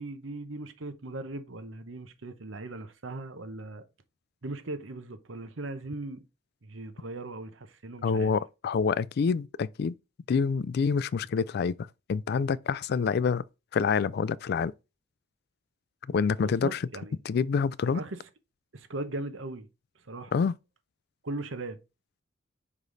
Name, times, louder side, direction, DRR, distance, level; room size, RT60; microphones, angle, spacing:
voice 1, 0.0-3.8 4.4-6.2 6.6-8.3 16.4-17.1 17.9-18.2 18.7-19.7 20.1-20.3 21.2-21.8, right 2 dB, 85° right, 1.0 m, -38 dB
voice 2, 8.0-10.0 10.3-13.4 13.7-14.7 16.1-16.8 17.2-18.0 20.3-20.6, left 5 dB, 55° left, 0.3 m, -27 dB
5.4 x 5.0 x 3.9 m
head